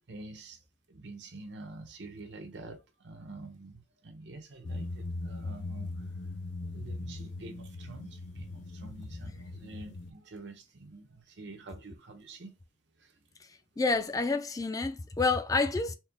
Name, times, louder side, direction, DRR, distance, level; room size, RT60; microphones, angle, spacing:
voice 1, 0.1-0.6 0.9-6.1 6.7-12.6 13.0-13.2, right 2 dB, 85° right, 0.8 m, -47 dB
sound 1, 4.6-10.1, left 2 dB, 85° left, 0.5 m, -40 dB
voice 2, 13.8-15.9, left 3 dB, 20° left, 0.3 m, -28 dB
4.3 x 2.2 x 3.4 m
head